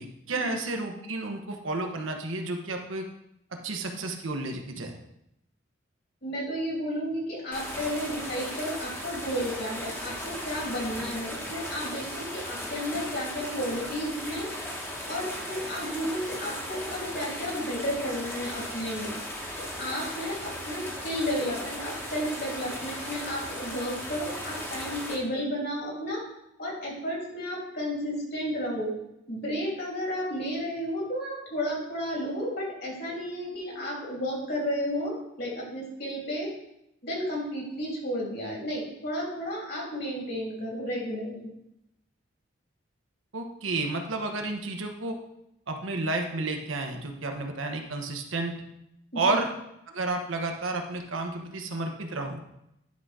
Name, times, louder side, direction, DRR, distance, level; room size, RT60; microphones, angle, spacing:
voice 1, 0.0-3.1 3.6-5.0 43.3-45.2 45.7-48.6 49.1-49.5 49.9-52.4, right 2 dB, 75° right, 4 dB, 1.0 m, -31 dB
voice 2, 6.2-14.5 15.1-19.2 19.6-26.3 26.6-28.9 29.3-36.5 37.0-41.5 49.1-49.4, equal, 55° left, -3 dB, 2.7 m, -32 dB
sound 1, 7.5-25.2, equal, 10° left, 1.1 m, -37 dB
10.5 x 3.8 x 4.8 m, 0.81 s
head